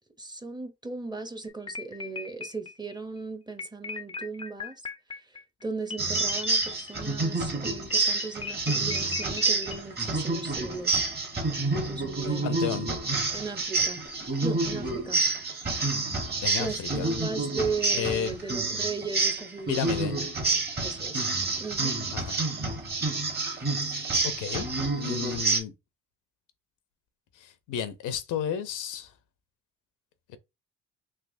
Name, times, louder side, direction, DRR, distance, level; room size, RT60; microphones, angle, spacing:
voice 1, 0.2-4.7 5.6-11.0 11.7-12.7 13.3-14.0 14.4-15.2 16.6-20.3 20.8-21.2 21.5-21.9, right 4 dB, 15° right, 0.6 m, -37 dB
sound 1, 1.5-2.9 3.6-7.2 7.6-9.8, left 5 dB, 20° left, 0.4 m, -38 dB
sound 2, 6.0-25.6, right 3 dB, 35° right, 1.2 m, -28 dB
voice 2, 12.2-12.9 16.4-17.1 17.9-18.3 19.7-20.2 22.1-22.4 23.9-24.7 25.0-25.7 27.4-29.1, left 8 dB, 85° left, 0.6 m, -33 dB
3.3 x 2.8 x 2.5 m
cardioid pair, 90°, 30 cm